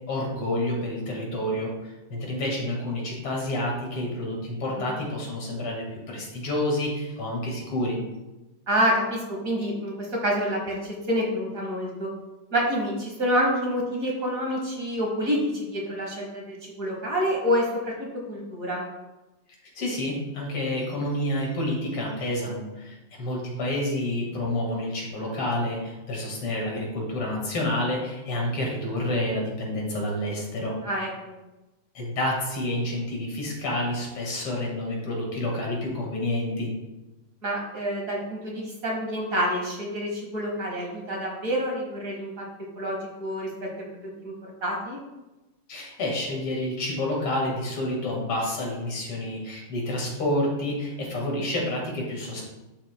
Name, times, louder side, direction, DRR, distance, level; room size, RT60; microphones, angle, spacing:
voice 1, 0.1-8.0 19.7-30.8 31.9-36.7 45.7-52.4, left 1 dB, 80° left, -1 dB, 2.8 m, -29 dB
voice 2, 8.7-12.1 12.5-17.9 18.3-18.8 30.8-31.3 37.4-42.4 42.8-43.7 44.2-44.3 44.6-45.0, equal, 45° right, -1 dB, 1.5 m, -27 dB
11.0 x 5.7 x 2.2 m, 1.0 s
omnidirectional pair, 2.4 m